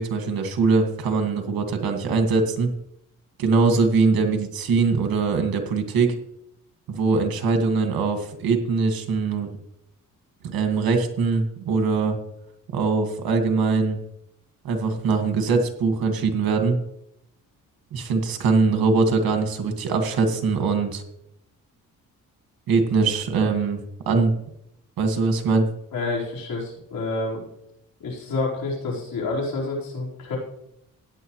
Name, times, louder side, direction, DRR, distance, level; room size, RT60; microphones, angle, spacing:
voice 1, 0.0-2.7 3.4-6.2 6.9-9.5 10.5-12.2 12.7-14.0 14.6-16.8 17.9-21.0 22.7-23.8 24.1-24.3 25.0-25.7, right 4 dB, 80° right, 5 dB, 1.9 m, -22 dB
voice 2, 25.9-27.4 28.0-30.4, left 3 dB, 85° left, -4 dB, 4.4 m, -28 dB
16.0 x 9.5 x 3.1 m, 0.80 s
cardioid pair, 105°, 35 cm